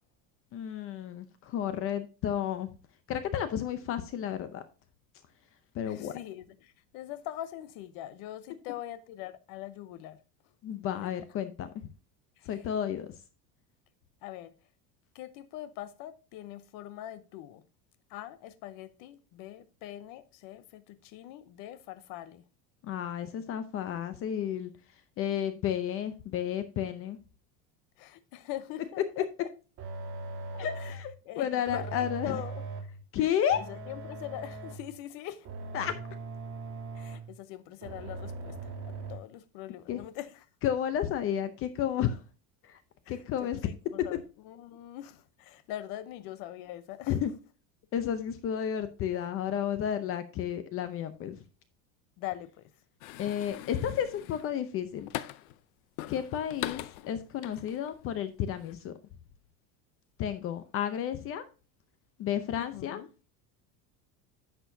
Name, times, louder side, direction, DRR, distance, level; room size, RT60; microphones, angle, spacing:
voice 1, 0.5-2.7 3.1-4.6 5.7-6.1 10.6-11.7 12.5-13.2 22.8-24.7 25.2-27.2 30.5-32.4 33.1-33.6 35.7-35.9 39.9-40.0 40.6-42.2 42.6-42.8 43.1-43.6 47.1-47.3 47.9-51.4 53.2-55.1 56.1-58.9 60.2-61.4 62.2-63.0, left 9 dB, 35° left, 0.6 m, -32 dB
voice 2, 5.8-10.2 11.0-11.1 12.4-12.5 14.2-14.6 15.1-17.6 18.1-22.4 28.0-29.3 30.7-31.0 31.2-32.6 33.5-35.5 36.9-40.4 43.1-47.1 52.2-52.7 62.5-63.1, left 13 dB, 55° left, 0.8 m, -42 dB
sound 1, 29.8-31.1 31.7-33.0 33.5-34.9 35.4-37.4 37.8-39.2, right 3 dB, 40° right, 2.9 m, -40 dB
sound 2, 53.0-55.6 56.0-58.1 58.5-58.7, left 15 dB, 90° left, 0.7 m, -41 dB
10.5 x 6.8 x 2.7 m
cardioid pair, 170°, 42 cm